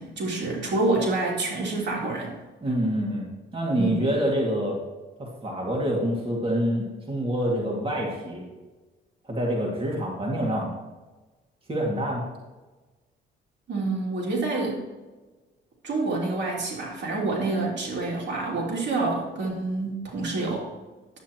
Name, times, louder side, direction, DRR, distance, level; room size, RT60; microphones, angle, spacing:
voice 1, 0.0-2.3 3.8-3.9 13.7-14.8 15.8-20.7, right 2 dB, 60° right, -3 dB, 3.0 m, -27 dB
voice 2, 2.6-3.2 3.5-4.8 5.2-8.4 9.2-10.7 11.7-12.2, equal, 25° right, -2 dB, 2.2 m, -26 dB
10.0 x 8.4 x 3.0 m, 1.2 s
cardioid pair, 90°, 20 cm